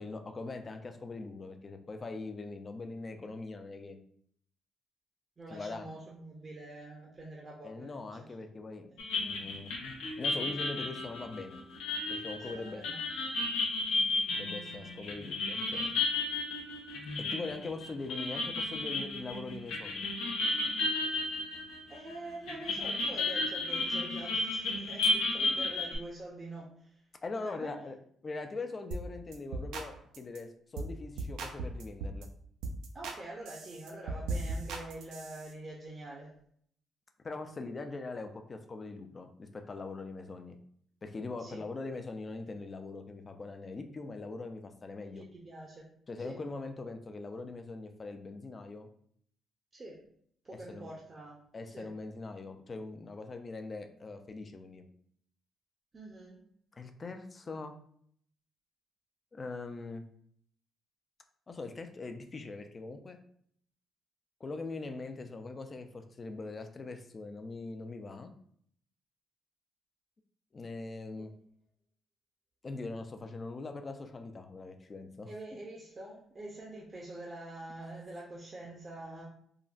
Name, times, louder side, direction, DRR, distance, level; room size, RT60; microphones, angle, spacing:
voice 1, 0.0-4.0 5.5-5.9 7.6-8.9 9.2-9.7 10.2-11.6 12.1-12.8 14.3-16.0 17.2-20.1 27.2-28.0 28.2-32.3 37.2-40.6 41.0-45.2 46.1-48.9 50.7-50.9 51.5-54.8 56.7-57.7 59.3-60.0 61.5-63.2 64.4-68.3 70.5-71.3 72.6-75.3, left 3 dB, 35° left, 7 dB, 0.4 m, -42 dB
voice 2, 5.4-8.3 8.9-9.0 12.5-13.0 21.9-27.0 27.4-27.8 32.9-36.3 41.4-41.6 45.2-45.8 46.2-46.4 49.7-50.1 50.4-51.4 51.7-51.9 55.9-56.4 71.2-71.3 75.3-79.2, right 2 dB, 30° right, -2 dB, 0.6 m, -45 dB
sound 1, 9.0-22.1 22.5-25.9, left 2 dB, 90° left, 0.6 m, -33 dB
sound 2, 28.9-29.1 29.3-29.9 30.1-30.4 30.8-30.9 31.2-32.2 32.6-33.2 33.5-35.5, right 3 dB, 85° right, 0.4 m, -38 dB
3.7 x 2.0 x 2.4 m, 0.64 s
cardioid pair, 90°, 0 cm